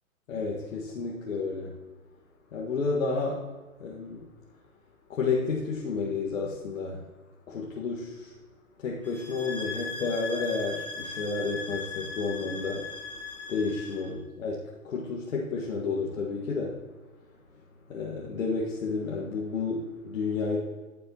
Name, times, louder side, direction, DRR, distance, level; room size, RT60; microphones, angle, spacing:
voice 1, 0.3-1.8 2.5-3.5 3.8-4.3 5.1-7.0 7.5-8.3 8.8-12.9 13.5-14.6 14.8-16.8 17.9-20.6, left 4 dB, 65° left, -3 dB, 1.8 m, -31 dB
sound 1, 9.0-14.1, left 3 dB, 5° left, 2.2 m, -38 dB
13.5 x 7.6 x 3.0 m, 1.3 s
figure-of-eight pair, 120°, 44 cm